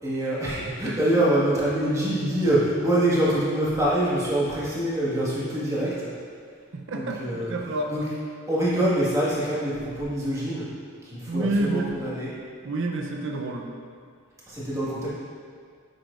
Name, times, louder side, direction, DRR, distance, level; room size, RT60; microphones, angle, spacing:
voice 1, 0.0-6.1 6.9-7.5 7.9-8.1 8.5-10.7 11.0-12.3 14.5-15.1, right 1 dB, 15° right, -8 dB, 1.6 m, -25 dB
voice 2, 6.7-7.2 7.5-7.9 11.3-11.9 12.6-13.7, right 2 dB, 60° right, 2 dB, 0.6 m, -28 dB
8.2 x 6.2 x 2.5 m, 2.1 s
head